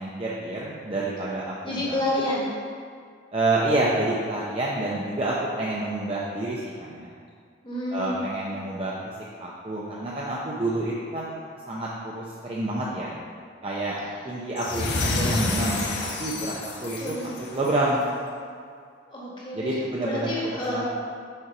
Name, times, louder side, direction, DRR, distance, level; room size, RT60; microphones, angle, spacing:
voice 1, 0.0-2.0 3.3-7.1 7.9-9.1 9.4-11.4 11.6-13.1 13.6-17.1 17.5-18.1 19.5-20.8, right 2 dB, 30° right, -5 dB, 0.6 m, -28 dB
voice 2, 1.6-2.5 7.6-8.2 17.0-17.6 19.1-19.8 20.0-20.8, left 1 dB, 25° left, -5 dB, 1.5 m, -29 dB
sound 1, 14.6-17.9, left 2 dB, 65° left, 1.0 m, -29 dB
6.5 x 4.6 x 5.9 m, 2.1 s
head